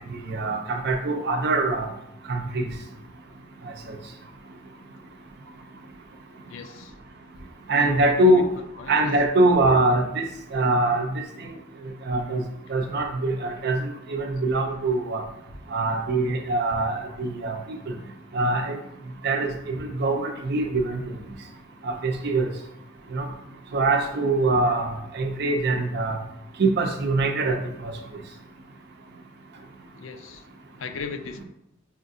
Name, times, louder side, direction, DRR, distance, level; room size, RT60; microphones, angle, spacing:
voice 1, 0.1-1.9 2.3-2.6 3.9-4.0 7.7-8.5 8.9-11.1 12.1-12.4 12.7-15.2 15.7-17.6 18.3-18.8 19.2-21.0 21.8-22.5 23.1-23.3 23.7-26.2 26.6-27.6 27.8-27.9, right 2 dB, 55° right, 5 dB, 0.5 m, -23 dB
voice 2, 6.5-6.9 8.0-8.4 8.8-8.9 29.9-30.4 30.8-31.4, left 5 dB, 70° left, 8 dB, 0.4 m, -37 dB
5.6 x 2.4 x 2.6 m, 0.81 s
head